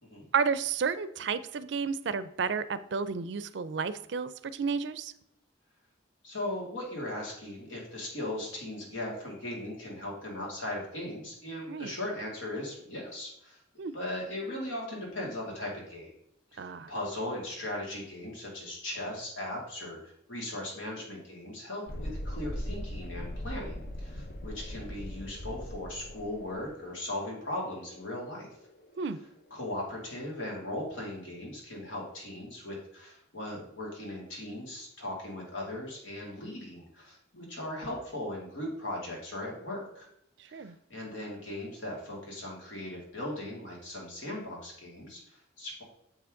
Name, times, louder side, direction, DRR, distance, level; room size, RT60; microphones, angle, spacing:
voice 1, 0.3-5.1 11.7-11.9 13.8-13.9 16.6-16.9 29.0-29.2 40.4-40.7, right 5 dB, 65° right, 15 dB, 0.4 m, -32 dB
voice 2, 6.2-13.6 13.9-16.1 16.5-20.0 20.3-28.5 29.5-40.1 40.5-45.8, left 1 dB, 85° left, -2 dB, 2.6 m, -38 dB
Thunderstorm, 21.9-29.3, equal, 50° left, 0.6 m, -40 dB
7.1 x 5.8 x 3.8 m, 0.75 s
head